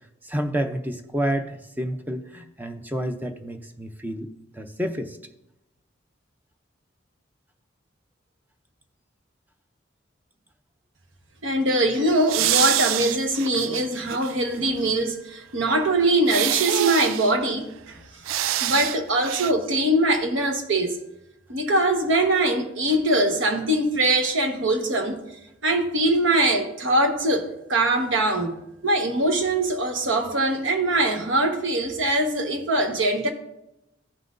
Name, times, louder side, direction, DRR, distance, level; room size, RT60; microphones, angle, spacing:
voice 1, 0.2-5.2, right 1 dB, 10° right, 0.5 m, -29 dB
voice 2, 11.4-17.7 18.6-21.0 21.5-25.2 25.6-28.5 28.8-33.3, right 1 dB, 70° right, 1.2 m, -22 dB
sound 1, 12.3-14.3 14.7-14.8 16.3-17.3 18.3-19.0 19.2-19.5, right 12 dB, 90° right, 0.3 m, -25 dB
14.5 x 5.7 x 2.6 m
head